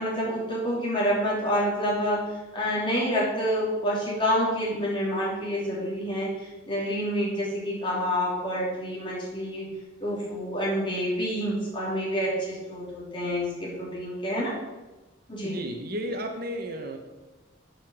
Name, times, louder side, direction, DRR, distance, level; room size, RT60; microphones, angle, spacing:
voice 1, 0.0-2.2 2.5-9.7 10.0-14.5 15.3-15.6, equal, 25° left, -5 dB, 2.9 m, -28 dB
voice 2, 15.4-17.0, equal, 50° right, 4 dB, 1.1 m, -33 dB
9.0 x 5.5 x 6.1 m, 1.1 s
head